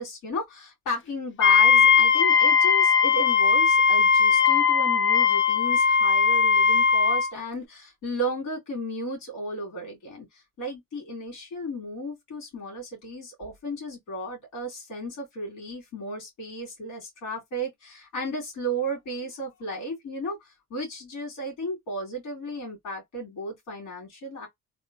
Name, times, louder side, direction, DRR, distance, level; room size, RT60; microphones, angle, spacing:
voice 1, 0.0-24.5, equal, 90° left, 2.5 m, -34 dB
Wind instrument woodwind instrument, 1.4-7.3, left 6 dB, 40° left, 0.7 m, -19 dB
3.6 x 2.5 x 2.5 m
cardioid pair, 90°, 30 cm